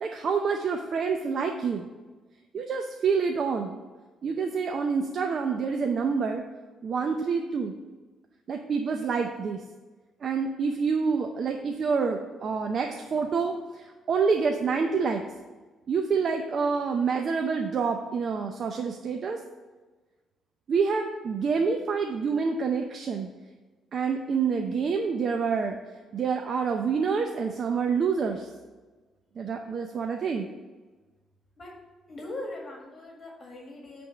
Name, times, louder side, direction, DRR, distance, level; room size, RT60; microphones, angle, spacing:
voice 1, 0.0-1.9 2.5-3.8 4.2-6.4 6.8-7.7 8.5-9.6 10.2-15.2 15.9-19.4 20.7-23.3 23.9-25.8 26.1-28.5 29.4-30.5, right 5 dB, 55° right, 4 dB, 0.6 m, -27 dB
voice 2, 32.1-34.1, left 1 dB, 40° left, -1 dB, 1.7 m, -40 dB
8.8 x 3.5 x 6.3 m, 1.3 s
cardioid pair, 90°, 0 cm